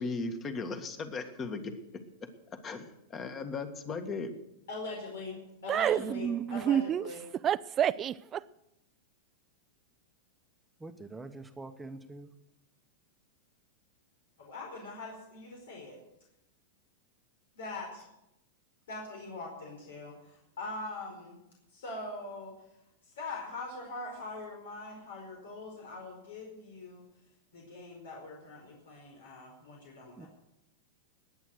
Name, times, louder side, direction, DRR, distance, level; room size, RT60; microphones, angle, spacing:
voice 1, 0.0-1.8 2.2-2.3 2.6-4.3, left 4 dB, 25° left, 1.8 m, -37 dB
voice 2, 4.7-7.2 14.4-16.0 17.5-18.1 18.9-21.4 21.7-22.6 23.0-27.0 27.5-30.3, left 2 dB, 80° left, 4.8 m, -42 dB
voice 3, 5.7-7.1 7.4-8.4, right 9 dB, 25° right, 0.4 m, -29 dB
voice 4, 10.8-12.3 30.2-30.3, right 2 dB, 5° right, 1.0 m, -45 dB
20.0 x 9.0 x 6.5 m
hypercardioid pair, 135°, 0 cm